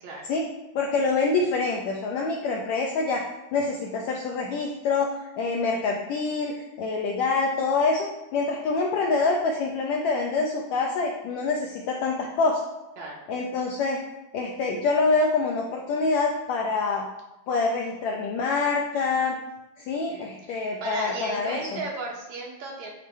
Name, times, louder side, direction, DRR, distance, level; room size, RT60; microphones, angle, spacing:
voice 1, 0.8-12.6 13.3-14.0 14.3-17.1 17.5-19.4 19.8-21.8, left 4 dB, 80° left, 0 dB, 1.6 m, -26 dB
voice 2, 20.0-22.9, right 2 dB, 65° right, -1 dB, 2.2 m, -36 dB
9.0 x 4.0 x 4.5 m, 0.98 s
omnidirectional pair, 4.0 m